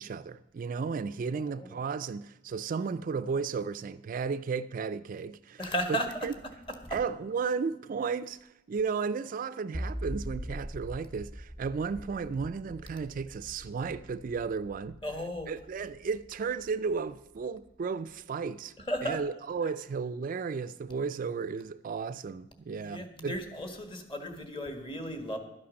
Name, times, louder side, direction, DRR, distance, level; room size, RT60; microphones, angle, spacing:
voice 1, 0.0-6.3 6.9-15.0 15.5-18.7 19.0-23.4, right 5 dB, 45° right, 0.3 m, -34 dB
voice 2, 1.3-1.8 5.6-6.1 6.8-7.0 15.0-15.5 18.9-19.2 22.8-25.4, equal, 25° left, 1.6 m, -35 dB
sound 1, 9.7-17.0, equal, 5° left, 0.6 m, -42 dB
12.0 x 8.5 x 6.3 m
head